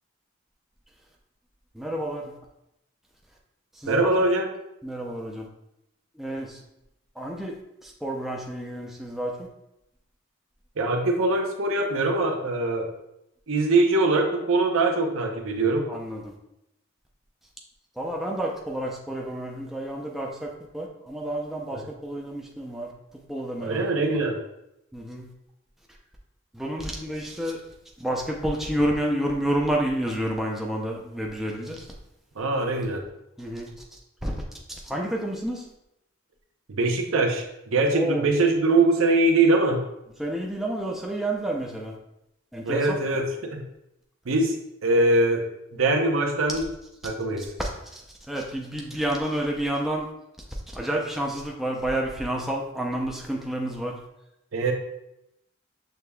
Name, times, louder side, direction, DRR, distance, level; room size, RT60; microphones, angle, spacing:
voice 1, 1.7-2.3 3.7-4.1 4.8-5.5 6.1-6.6 7.2-7.6 7.8-9.5 15.9-16.3 18.0-24.2 24.9-25.3 26.5-27.6 28.0-31.9 33.4-33.7 34.2-34.4 34.7-35.7 37.9-38.3 40.2-41.9 42.5-43.0 47.4-50.1 50.5-54.0, right 1 dB, ahead, -2 dB, 0.5 m, -30 dB
voice 2, 3.9-4.5 10.8-12.9 13.5-15.9 23.6-24.4 32.4-33.0 36.7-37.4 37.7-39.8 42.6-43.6 44.3-44.5 44.8-45.4 45.8-46.6 47.0-47.5 54.5-54.7, right 2 dB, 85° right, 2 dB, 0.7 m, -22 dB
6.6 x 3.4 x 2.3 m, 0.86 s
head